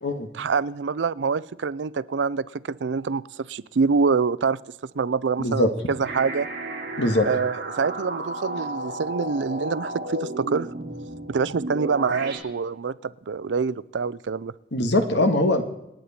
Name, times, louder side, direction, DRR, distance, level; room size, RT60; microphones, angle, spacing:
voice 1, 0.3-4.6 5.0-6.5 7.2-10.7 11.3-14.5, right 5 dB, 85° right, 19 dB, 0.5 m, -25 dB
voice 2, 5.4-5.7 7.0-7.3 14.7-15.6, left 1 dB, 70° left, 7 dB, 1.7 m, -21 dB
sound 1, 6.0-12.4, right 2 dB, 60° right, 3.1 m, -33 dB
28.0 x 9.3 x 4.3 m, 0.87 s
head